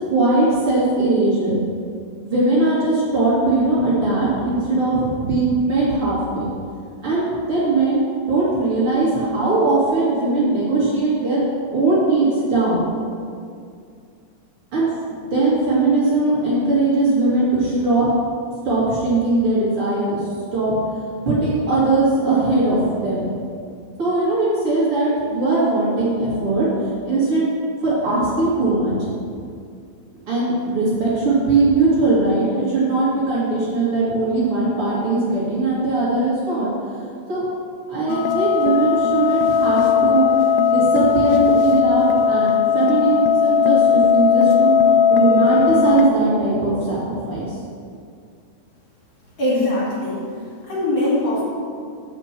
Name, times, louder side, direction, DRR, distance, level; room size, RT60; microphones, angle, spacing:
voice 1, 0.1-1.5 2.2-6.5 7.0-11.4 11.7-12.8 14.7-18.0 18.6-20.2 20.5-20.7 21.3-23.3 24.0-27.4 27.8-29.0 30.3-36.7 37.3-37.4 37.9-40.3 40.6-47.6, right 2 dB, 50° right, -8 dB, 3.1 m, -20 dB
sound 1, 38.1-46.1, left 7 dB, 90° left, 1.3 m, -17 dB
voice 2, 49.4-50.2 50.6-51.4, left 1 dB, 45° left, -7 dB, 3.1 m, -21 dB
7.9 x 5.9 x 7.4 m, 2.3 s
omnidirectional pair, 3.3 m